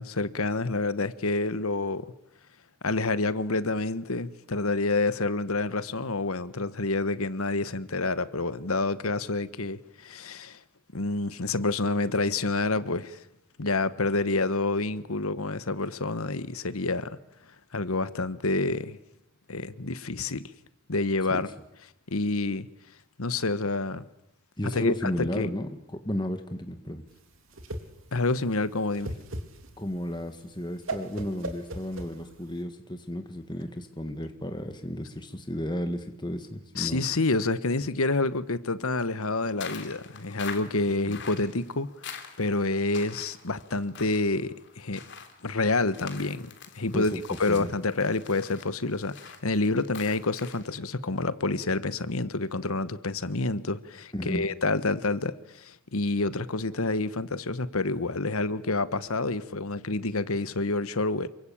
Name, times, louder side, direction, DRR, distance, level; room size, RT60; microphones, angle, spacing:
voice 1, 0.0-2.1 2.8-10.6 10.9-13.2 13.6-17.2 17.7-19.0 19.5-20.5 20.9-21.5 22.1-22.7 23.2-24.0 24.7-25.5 28.1-29.2 36.7-45.0 45.4-47.1 47.4-61.3, left 3 dB, 80° left, 1.3 m, -28 dB
voice 2, 24.6-27.0 29.8-37.0 46.9-47.7 54.1-54.4, equal, 20° left, 1.8 m, -33 dB
Whoosh swoosh swish, 27.1-32.6, right 2 dB, 65° right, 3.3 m, -38 dB
sound 1, 39.6-50.8, left 6 dB, 55° left, 3.4 m, -45 dB
28.0 x 24.0 x 8.7 m
head